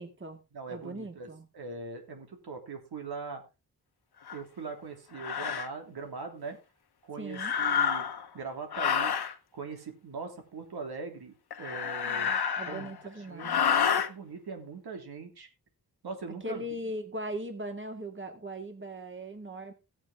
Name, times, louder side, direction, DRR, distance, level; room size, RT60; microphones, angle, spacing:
voice 1, 0.0-0.4 0.7-1.5 7.2-7.6 12.6-13.6 16.4-19.7, right 1 dB, 30° right, 6 dB, 2.2 m, -39 dB
voice 2, 0.5-1.3 1.5-3.4 4.3-6.6 7.0-8.0 8.3-9.1 9.5-12.3 12.7-13.0 13.3-15.5 16.0-16.6, right 4 dB, 85° right, 4 dB, 3.2 m, -41 dB
sound 1, 4.3-4.4 5.2-5.7 7.3-8.3 8.7-9.3 11.5-13.0 13.4-14.1, left 7 dB, 85° left, 1.3 m, -29 dB
15.0 x 8.9 x 3.6 m, 0.27 s
wide cardioid pair, 90°, 37 cm